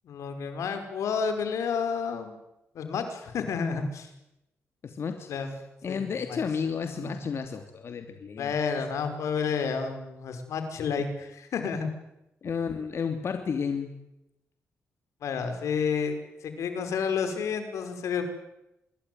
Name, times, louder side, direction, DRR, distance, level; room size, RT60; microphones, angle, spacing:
voice 1, 0.0-2.3 2.8-4.1 5.3-5.6 5.9-6.0 6.3-6.4 6.8-7.3 8.4-11.9 15.2-18.2, left 6 dB, 85° left, 7 dB, 5.3 m, -30 dB
voice 2, 4.8-5.3 5.8-8.5 12.4-13.9, left 6 dB, 55° left, 6 dB, 2.9 m, -32 dB
26.5 x 22.0 x 9.5 m, 0.89 s
cardioid pair, 95°, 5 cm